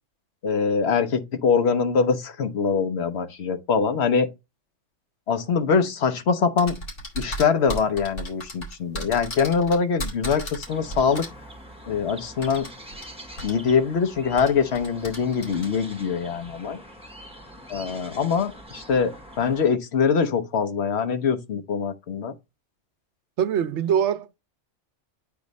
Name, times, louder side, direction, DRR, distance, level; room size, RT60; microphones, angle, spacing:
voice 1, 0.4-4.3 5.3-6.8 7.2-11.2 11.9-12.7 13.4-16.8 17.7-19.1 19.4-22.3, left 6 dB, 60° left, 1.2 m, -23 dB
sound 1, 6.6-11.3 12.4-13.1 13.4-13.5 14.4-15.7, right 1 dB, 80° left, 2.9 m, -34 dB
sound 2, 10.7-19.7, equal, 5° right, 1.5 m, -44 dB
voice 2, 23.4-24.4, right 8 dB, 70° right, 0.9 m, -23 dB
8.4 x 3.1 x 5.2 m
omnidirectional pair, 1.3 m